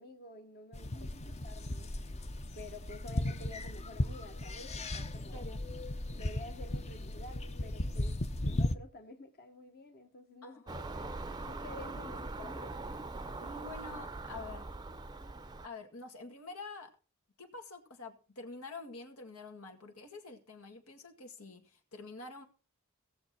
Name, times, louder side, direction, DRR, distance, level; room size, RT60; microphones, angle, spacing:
voice 1, 0.0-1.9 2.5-5.5 6.1-13.0, left 2 dB, 45° left, 1.1 m, -51 dB
sound 1, 0.7-8.8, left 1 dB, 30° left, 0.6 m, -36 dB
voice 2, 0.9-1.3 5.3-5.6 10.4-10.8 13.4-14.7 15.6-16.9 17.4-22.4, left 3 dB, 90° left, 2.1 m, -47 dB
Car passing by / Engine, 10.7-15.7, right 2 dB, 20° right, 0.6 m, -42 dB
17.5 x 6.9 x 4.4 m
head